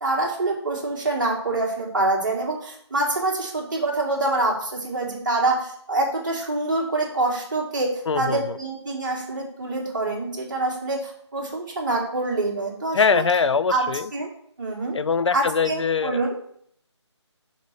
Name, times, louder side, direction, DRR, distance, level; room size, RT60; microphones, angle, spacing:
voice 1, 0.0-13.2 13.7-13.9 14.1-14.3 14.6-15.0 15.3-16.4, right 2 dB, 40° right, 2.2 m, -25 dB
voice 2, 8.1-8.6 12.9-14.1 14.9-16.2, left 5 dB, 70° left, 0.4 m, -22 dB
6.5 x 4.1 x 6.0 m
figure-of-eight pair, 160°, 15 cm